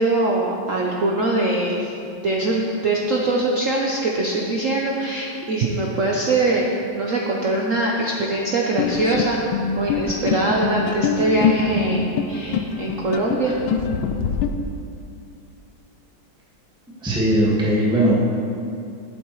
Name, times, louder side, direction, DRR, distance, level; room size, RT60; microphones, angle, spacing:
voice 1, 0.0-1.9 2.2-6.7 6.9-9.4 9.8-13.6, right 2 dB, 70° right, -2 dB, 0.7 m, -22 dB
sound 1, 8.8-14.5, left 6 dB, 80° left, 1.3 m, -24 dB
voice 2, 17.0-18.1, right 1 dB, 5° right, -7 dB, 1.4 m, -19 dB
12.0 x 8.2 x 3.1 m, 2.5 s
omnidirectional pair, 2.3 m